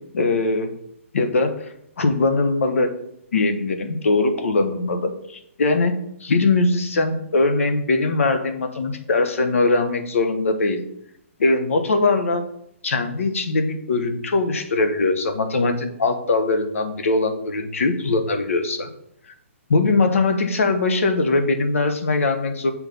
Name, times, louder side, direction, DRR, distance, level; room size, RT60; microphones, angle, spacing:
voice 1, 0.1-0.7 1.1-2.9 3.3-10.8 11.4-12.4 12.8-18.9 19.7-22.7, left 3 dB, 70° left, 8 dB, 1.1 m, -21 dB
6.1 x 4.5 x 5.3 m, 0.75 s
hypercardioid pair, 170°, 8 cm